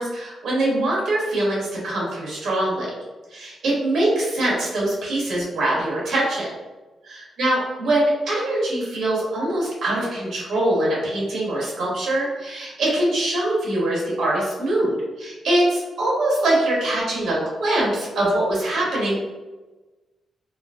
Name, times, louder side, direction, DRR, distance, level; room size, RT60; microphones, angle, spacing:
voice 1, 0.0-2.9 3.3-6.4 7.0-19.2, right 1 dB, 80° right, -4 dB, 1.0 m, -23 dB
2.7 x 2.5 x 2.3 m, 1.2 s
cardioid pair, 115°, 0 cm